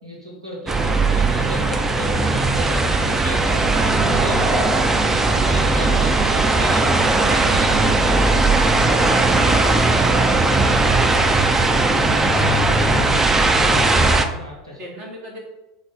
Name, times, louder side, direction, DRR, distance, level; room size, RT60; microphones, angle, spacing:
voice 1, 0.0-4.7 5.3-8.4 14.3-14.8, equal, 90° right, -3 dB, 0.9 m, -34 dB
sound 1, 0.7-14.2, right 3 dB, 15° right, 0.3 m, -18 dB
voice 2, 5.4-6.1 9.4-10.6 11.2-13.6 14.8-15.4, right 1 dB, 40° right, -1 dB, 0.9 m, -36 dB
5.1 x 2.0 x 3.8 m, 1.0 s
figure-of-eight pair, 80°, 3 cm